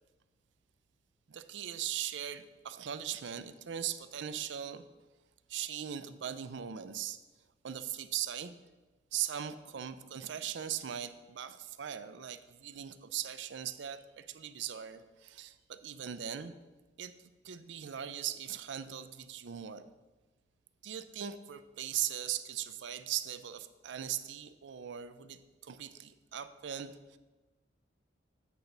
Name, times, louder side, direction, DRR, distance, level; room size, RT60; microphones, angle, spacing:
voice 1, 1.3-4.9 5.5-7.2 7.6-8.6 9.1-16.5 17.0-17.1 17.4-19.8 20.8-27.2, right 10 dB, 70° right, 12 dB, 0.4 m, -39 dB
8.3 x 4.0 x 5.8 m, 1.2 s
head